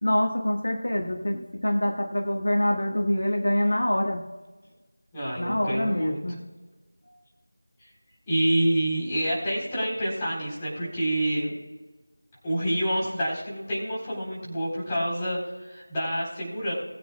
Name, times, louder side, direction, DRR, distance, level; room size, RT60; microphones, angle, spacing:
voice 1, 0.0-4.2 5.4-6.4, left 1 dB, 70° left, 2 dB, 1.6 m, -25 dB
voice 2, 5.1-6.2 8.3-11.6 12.4-16.7, right 1 dB, 15° left, -6 dB, 4.0 m, -27 dB
21.0 x 8.9 x 2.3 m, 1.2 s
figure-of-eight pair, 170°, 0 cm